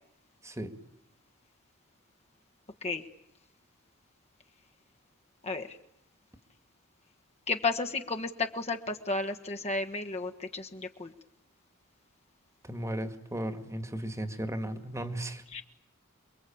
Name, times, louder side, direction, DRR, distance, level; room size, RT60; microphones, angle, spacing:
voice 1, 5.4-5.8 7.5-11.1 15.5-15.6, left 3 dB, 30° left, 4 dB, 1.5 m, -33 dB
voice 2, 12.6-15.4, right 1 dB, 15° right, 8 dB, 1.9 m, -35 dB
28.5 x 22.5 x 8.8 m, 0.77 s
head